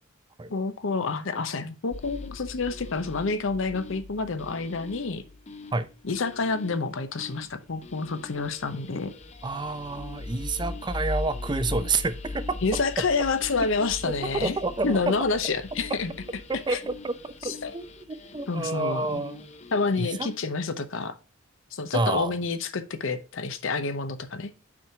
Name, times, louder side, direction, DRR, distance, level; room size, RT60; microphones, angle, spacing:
voice 1, 0.5-5.2 6.0-9.1 12.6-14.6 14.8-16.1 16.7-16.8 17.4-17.7 18.5-19.2 19.7-21.1 21.7-24.5, left 4 dB, 70° left, 0.8 m, -28 dB
sound 1, 1.9-20.4, left 2 dB, 35° left, 0.6 m, -40 dB
voice 2, 9.4-12.6 13.8-15.1 16.5-19.5 20.0-20.3 21.9-22.3, right 3 dB, 20° right, 0.5 m, -29 dB
6.0 x 4.6 x 4.9 m
head